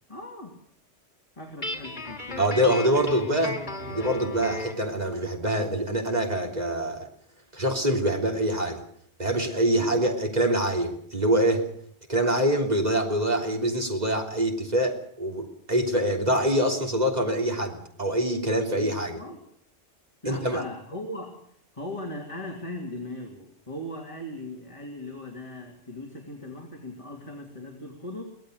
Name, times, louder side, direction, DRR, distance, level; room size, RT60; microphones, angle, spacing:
voice 1, 0.1-0.6 1.4-2.7 9.7-10.2 18.7-19.4 20.2-28.2, left 1 dB, 30° left, 1 dB, 2.9 m, -39 dB
Guitar, 1.6-4.9, left 2 dB, 45° left, 3.0 m, -35 dB
voice 2, 2.4-3.6 3.9-7.1 7.5-8.8 9.2-11.7 12.1-19.2 20.3-20.6, right 1 dB, 40° right, 2 dB, 3.5 m, -25 dB
23.5 x 17.5 x 6.5 m, 0.63 s
omnidirectional pair, 1.1 m